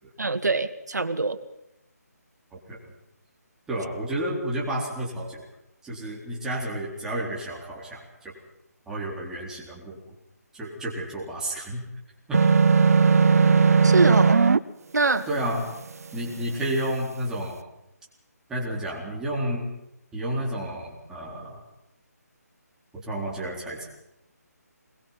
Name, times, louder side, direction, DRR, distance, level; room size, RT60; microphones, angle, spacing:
voice 1, 0.2-1.4 13.8-14.6 14.9-15.3, right 3 dB, 80° right, 9 dB, 1.9 m, -24 dB
voice 2, 3.7-5.4 5.8-8.3 8.9-10.0 10.5-11.8 12.3-12.4 14.0-14.2 15.3-15.6 16.1-17.6 18.5-19.7 20.1-21.6 22.9-24.0, right 1 dB, 5° right, -4 dB, 4.1 m, -31 dB
sound 1, 12.3-14.6, right 5 dB, 60° right, 0.9 m, -17 dB
22.0 x 22.0 x 5.9 m, 0.84 s
figure-of-eight pair, 160°, 9 cm